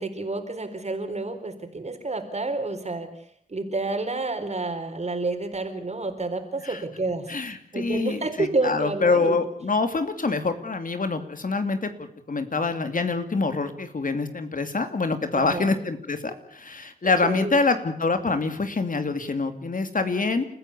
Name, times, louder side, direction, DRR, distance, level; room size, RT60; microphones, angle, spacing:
voice 1, 0.0-9.4 15.3-15.7 17.0-17.6, right 3 dB, 45° right, 6 dB, 4.4 m, -30 dB
voice 2, 7.3-20.5, left 3 dB, 65° left, 9 dB, 2.6 m, -25 dB
30.0 x 14.5 x 8.4 m, 0.63 s
wide cardioid pair, 95°, 15 cm